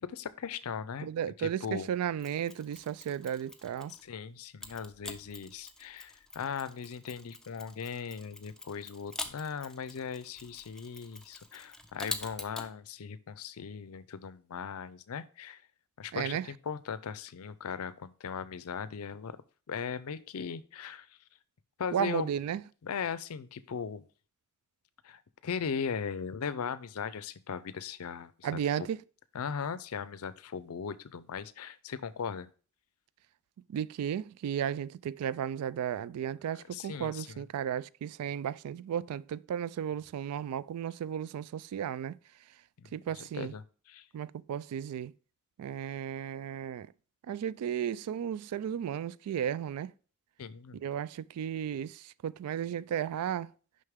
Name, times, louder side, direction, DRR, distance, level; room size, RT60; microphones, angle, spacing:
voice 1, 0.0-1.1 1.4-1.9 3.9-15.6 16.0-19.4 19.7-21.1 21.8-22.3 22.8-24.0 25.0-28.6 29.3-32.5 36.5-37.4 42.8-43.6 43.9-44.0 50.4-50.8, left 6 dB, 70° left, 0.5 m, -38 dB
voice 2, 1.0-3.9 16.1-16.5 21.9-22.6 28.4-29.0 33.7-42.2 42.9-43.5 44.1-45.1 45.6-46.9 47.3-49.9 50.7-53.5, right 9 dB, 80° right, 0.3 m, -34 dB
Mechanisms, 2.2-4.1 4.6-12.7, left 2 dB, 5° left, 0.6 m, -45 dB
6.5 x 5.4 x 3.5 m
head